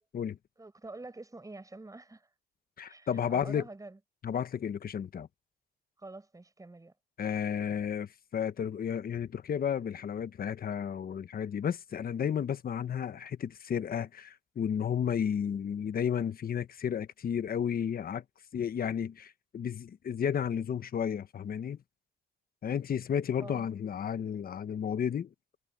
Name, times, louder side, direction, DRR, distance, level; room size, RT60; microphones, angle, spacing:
voice 1, 0.6-2.3 2.9-4.0 6.0-6.9 23.4-23.7, right 2 dB, 15° right, 6.2 m, -47 dB
voice 2, 2.8-3.6 4.2-5.3 7.2-18.2 18.5-21.8 22.6-25.3, left 8 dB, 50° left, 1.1 m, -32 dB
cardioid pair, 90°, 20 cm